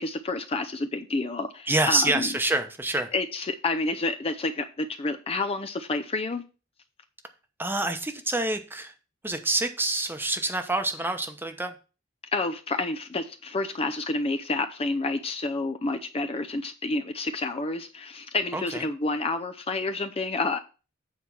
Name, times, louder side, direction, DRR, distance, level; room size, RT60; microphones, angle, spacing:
voice 1, 0.0-2.3 3.1-6.4 12.3-20.6, left 3 dB, 30° left, 8 dB, 0.6 m, -29 dB
voice 2, 1.7-3.1 7.6-8.9 9.2-11.7 18.5-18.8, right 2 dB, 10° right, 7 dB, 0.9 m, -27 dB
8.2 x 4.5 x 5.9 m, 0.34 s
head